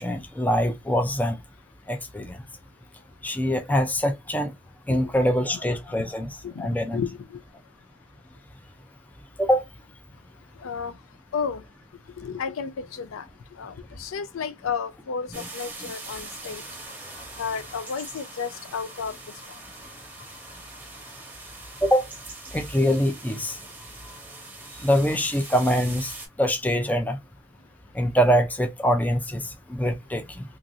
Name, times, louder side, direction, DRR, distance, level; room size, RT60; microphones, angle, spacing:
voice 1, 0.0-1.4 1.9-2.4 3.2-4.5 4.9-7.0 9.4-9.6 15.3-15.4 21.8-22.1 22.5-23.6 24.8-26.1 26.4-27.2 27.9-30.4, equal, 10° left, 0.3 m, -24 dB
voice 2, 6.4-7.4 10.6-11.0 11.3-11.6 12.2-13.3 13.6-16.6 17.4-19.1, left 6 dB, 85° left, 0.4 m, -32 dB
sound 1, 15.3-26.3, right 2 dB, 10° right, 0.8 m, -42 dB
2.9 x 2.5 x 2.6 m
head